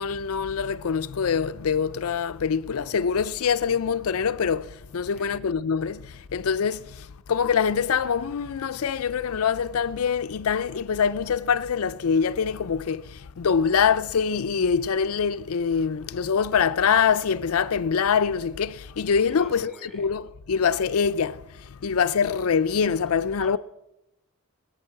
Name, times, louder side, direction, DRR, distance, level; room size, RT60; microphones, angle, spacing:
voice 1, 0.0-23.6, left 6 dB, 75° left, 0.5 m, -24 dB
voice 2, 5.1-5.4 19.2-20.1 23.4-23.6, left 1 dB, ahead, 3.8 m, -46 dB
21.0 x 8.9 x 7.6 m
head